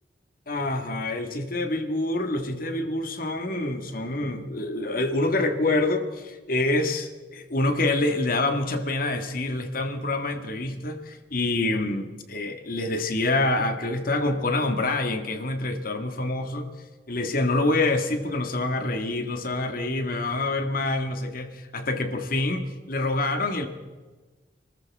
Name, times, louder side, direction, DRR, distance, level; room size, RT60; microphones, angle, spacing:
voice 1, 0.5-16.7 17.1-23.7, left 2 dB, 55° left, 6 dB, 1.7 m, -26 dB
28.0 x 14.0 x 3.5 m, 1.3 s
head